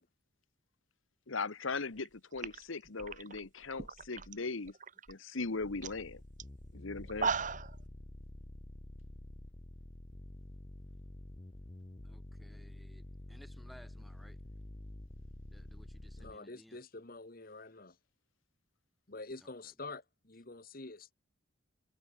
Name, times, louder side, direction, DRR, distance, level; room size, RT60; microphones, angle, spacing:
voice 1, 1.3-4.7 5.1-6.2 6.7-7.3, left 3 dB, 75° left, 1.2 m, -39 dB
sound 1, 1.9-2.1 2.4-4.3 4.7-5.1 5.5-5.6 5.8-6.0 6.4-6.5 7.0-7.8, right 5 dB, 40° right, 1.1 m, -37 dB
sound 2, 5.6-16.4, left 1 dB, 25° left, 0.7 m, -49 dB
voice 2, 12.0-14.4 15.5-16.8 19.4-20.0, equal, ahead, 7.8 m, -60 dB
voice 3, 16.2-17.9 19.1-21.1, left 3 dB, 45° left, 1.4 m, -47 dB
head